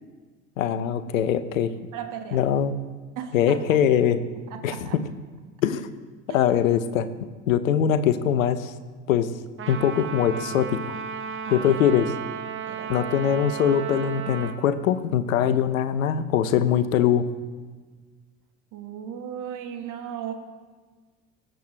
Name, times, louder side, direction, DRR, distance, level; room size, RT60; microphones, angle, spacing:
voice 1, 0.6-1.7 2.3-2.7 3.3-4.2 4.6-5.0 5.6-5.9 6.3-7.1 7.5-8.7 9.1-9.3 9.7-10.9 11.5-12.1 12.9-17.3, left 9 dB, 75° left, 14 dB, 0.8 m, -22 dB
voice 2, 1.9-2.4 3.1-3.8 4.5-4.9 6.3-6.4 11.4-12.1 12.7-13.0 18.7-20.3, right 9 dB, 50° right, 5 dB, 1.6 m, -36 dB
Trumpet, 9.6-14.6, right 7 dB, 30° right, 1.1 m, -34 dB
19.0 x 7.7 x 3.2 m, 1.4 s
figure-of-eight pair, 60°, 41 cm